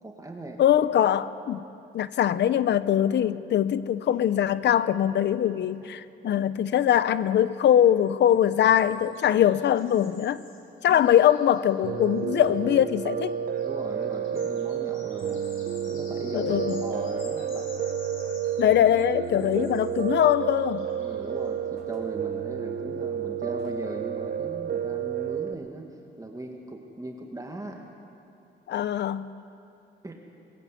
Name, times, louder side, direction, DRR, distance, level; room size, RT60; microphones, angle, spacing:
voice 1, 0.0-0.6 6.3-6.4 8.3-8.4 9.3-9.5 10.9-11.2 13.6-15.4 15.9-17.7 19.4-19.8 21.0-25.9 26.2-27.8 30.0-30.2, right 2 dB, 15° right, 1 dB, 2.0 m, -39 dB
voice 2, 0.6-1.6 1.9-10.4 10.8-13.3 16.3-16.8 18.6-20.9 28.7-29.3, left 10 dB, 60° left, 15 dB, 0.7 m, -22 dB
sound 1, 4.1-5.1 5.5-5.6 5.8-5.9 8.1-12.6 13.3-21.5, left 4 dB, 80° left, 3.9 m, -51 dB
sound 2, 5.6-5.7 8.5-9.1 9.7-9.8 10.2-11.2 12.2-12.9 14.7-15.1 16.4-17.1 18.7-18.8 19.4-20.1 21.4-21.5 21.8-22.4 23.6-24.0, equal, ahead, 5.2 m, -54 dB
Piano, 11.8-25.5, right 8 dB, 50° right, 1.0 m, -31 dB
21.5 x 14.5 x 8.4 m, 2.6 s
cardioid pair, 90°, 20 cm